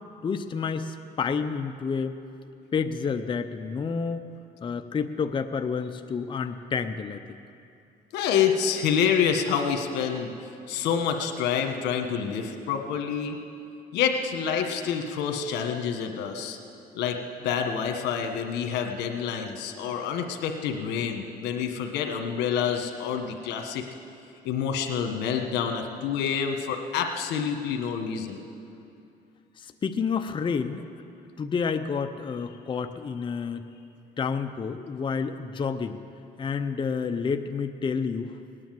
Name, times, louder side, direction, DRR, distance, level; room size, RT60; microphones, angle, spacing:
voice 1, 0.2-2.2 2.7-4.2 4.6-7.2 29.6-31.0 31.4-33.6 34.2-36.0 36.4-38.4, left 5 dB, 30° left, 7 dB, 0.6 m, -29 dB
voice 2, 8.1-10.3 10.7-13.4 13.9-16.6 16.9-17.2 17.4-23.8 24.4-28.4, left 7 dB, 85° left, 5 dB, 1.5 m, -27 dB
18.5 x 9.9 x 7.7 m, 2.6 s
cardioid pair, 110°, 17 cm